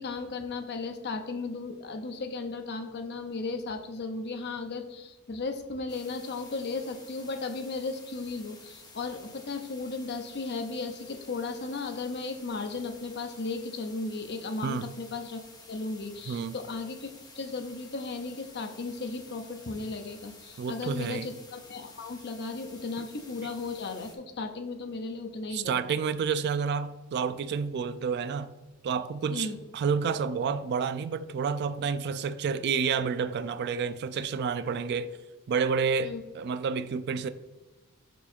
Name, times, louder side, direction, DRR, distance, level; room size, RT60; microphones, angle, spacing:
voice 1, 0.0-15.4 15.7-25.8 29.3-29.6 36.0-36.2, left 3 dB, 50° left, 0.7 m, -35 dB
sound 1, 5.9-24.2, left 3 dB, 20° left, 1.0 m, -52 dB
voice 2, 20.6-21.3 25.5-28.5 28.8-29.5 29.7-35.1 35.5-37.3, right 6 dB, 50° right, 0.3 m, -29 dB
5.8 x 4.6 x 4.3 m
head